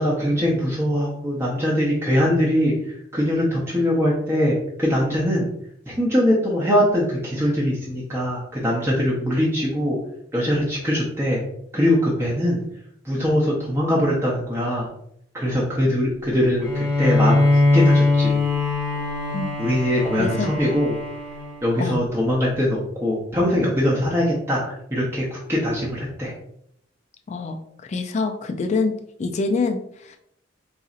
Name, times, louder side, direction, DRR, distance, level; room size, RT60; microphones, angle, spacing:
voice 1, 0.0-2.7 3.1-5.5 5.9-10.0 10.3-11.4 11.7-12.6 13.0-14.9 15.3-18.4 19.6-20.9 21.6-26.3, equal, 15° right, -5 dB, 0.6 m, -22 dB
Bowed string instrument, 16.6-22.1, left 2 dB, 5° left, 1.0 m, -21 dB
voice 2, 20.2-20.5 21.8-22.0 27.3-27.6 27.9-28.9 29.2-30.2, left 3 dB, 35° left, 4 dB, 0.3 m, -25 dB
4.0 x 2.6 x 2.4 m, 0.71 s
head